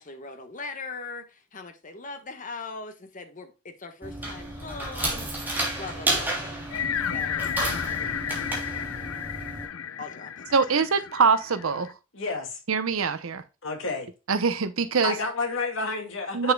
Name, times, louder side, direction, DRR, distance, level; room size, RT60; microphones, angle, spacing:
voice 1, 0.0-5.5 5.8-6.4 7.1-7.5 10.0-10.4 10.7-10.8, left 3 dB, 40° left, 1.3 m, -40 dB
sound 1, 4.0-9.7, right 1 dB, 10° right, 2.8 m, -31 dB
sound 2, 6.7-11.9, left 8 dB, 80° left, 0.6 m, -32 dB
voice 2, 10.5-12.0 12.7-13.4 14.3-15.1 16.3-16.5, right 5 dB, 75° right, 0.8 m, -23 dB
voice 3, 12.1-12.6 13.6-14.1 15.0-16.5, left 3 dB, 65° left, 2.3 m, -30 dB
8.0 x 6.7 x 2.2 m
head